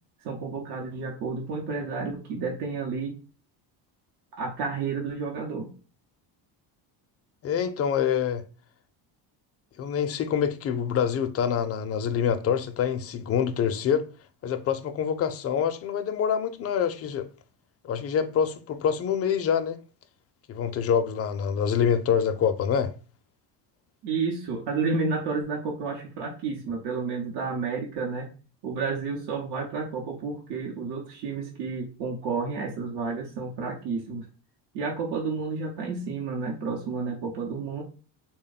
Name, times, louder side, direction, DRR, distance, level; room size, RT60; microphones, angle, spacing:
voice 1, 0.2-3.2 4.4-5.7 24.0-28.3 28.6-34.3 34.7-37.8, right 4 dB, 65° right, 0.8 m, -31 dB
voice 2, 7.4-8.4 9.8-14.0 14.4-17.3 17.8-19.8 20.5-22.9, left 8 dB, 35° left, 0.4 m, -26 dB
3.5 x 2.2 x 3.9 m
cardioid pair, 120°, 44 cm